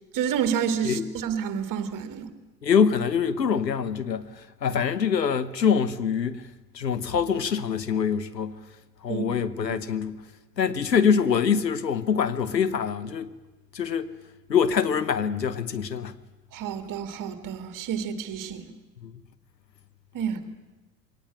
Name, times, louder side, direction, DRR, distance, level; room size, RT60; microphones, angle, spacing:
voice 1, 0.1-2.3 9.1-9.3 9.7-9.8 16.5-18.7 20.1-20.5, right 8 dB, 40° right, 2.3 m, -29 dB
voice 2, 2.6-6.4 6.7-8.6 9.0-10.2 10.6-13.3 13.7-14.1 14.5-16.1 19.0-19.1, left 7 dB, 90° left, 1.1 m, -24 dB
22.5 x 18.5 x 8.7 m
figure-of-eight pair, 75°, 48 cm